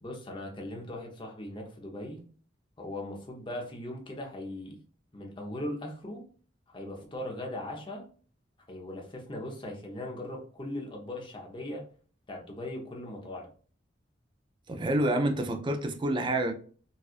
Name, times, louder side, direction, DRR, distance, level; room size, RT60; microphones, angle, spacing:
voice 1, 0.0-2.3 2.8-4.8 5.1-6.2 6.7-8.0 8.7-11.8 12.3-13.5, left 1 dB, 25° left, 0.8 m, -39 dB
voice 2, 14.7-16.5, right 1 dB, 25° right, 0.4 m, -28 dB
4.1 x 2.4 x 2.4 m
head